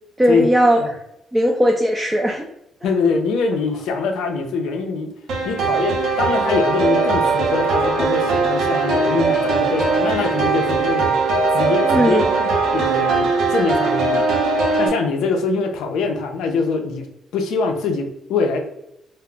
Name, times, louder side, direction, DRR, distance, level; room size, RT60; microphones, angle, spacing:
voice 1, 0.2-1.0 1.3-2.5 11.8-12.2, equal, 10° right, 1 dB, 0.4 m, -18 dB
voice 2, 2.8-5.1 5.4-11.1 11.5-17.1 17.3-18.6, left 4 dB, 85° left, 4 dB, 0.4 m, -23 dB
sound 1, 5.3-14.9, right 4 dB, 75° right, 0.6 m, -19 dB
2.2 x 2.0 x 3.7 m, 0.81 s
cardioid pair, 90°, 0 cm